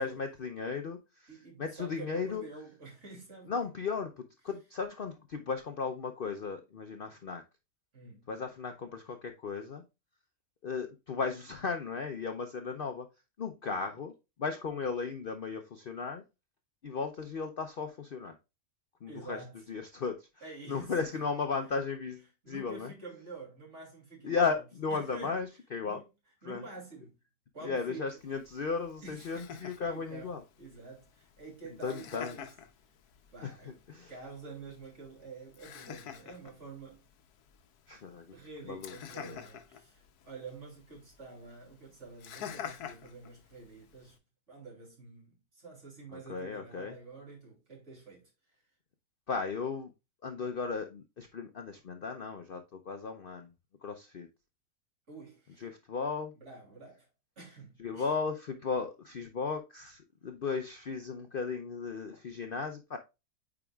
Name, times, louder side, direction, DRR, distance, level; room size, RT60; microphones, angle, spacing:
voice 1, 0.0-2.4 3.5-7.4 8.3-9.8 10.6-13.1 13.4-14.1 14.4-16.2 16.8-18.3 19.0-19.4 19.7-20.3 20.7-22.9 24.2-26.0 26.4-26.6 27.6-30.4 31.8-32.4 33.4-33.6 33.9-34.1 37.9-38.3 38.6-39.0 39.2-39.4 46.1-46.9 49.3-49.9 50.2-53.5 53.8-54.3 55.6-56.3 57.8-63.0, left 5 dB, 50° left, 0.7 m, -35 dB
voice 2, 1.3-3.5 7.9-8.3 13.7-13.8 19.1-19.6 20.4-21.2 22.4-24.6 24.9-25.4 25.8-26.1 26.4-27.1 27.5-28.1 29.0-32.5 33.3-37.0 38.3-44.2 44.5-48.6 55.1-55.7 56.3-57.1 57.4-58.1, right 3 dB, 50° right, 3.2 m, -48 dB
Laughter, 28.2-44.2, left 9 dB, 85° left, 1.3 m, -49 dB
8.8 x 4.9 x 2.3 m
omnidirectional pair, 1.6 m